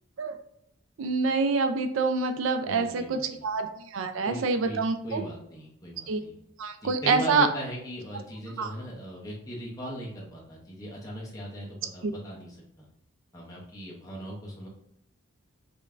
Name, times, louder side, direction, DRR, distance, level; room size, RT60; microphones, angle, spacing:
voice 1, 1.0-3.7 3.9-5.2 6.1-6.2 6.6-7.5 8.6-8.7 12.0-12.1, right 4 dB, 70° right, 7 dB, 0.4 m, -26 dB
voice 2, 2.6-3.4 4.2-4.8 5.0-6.4 6.8-12.9 13.3-14.7, equal, 15° left, -4 dB, 0.7 m, -39 dB
5.2 x 2.2 x 2.4 m, 0.72 s
head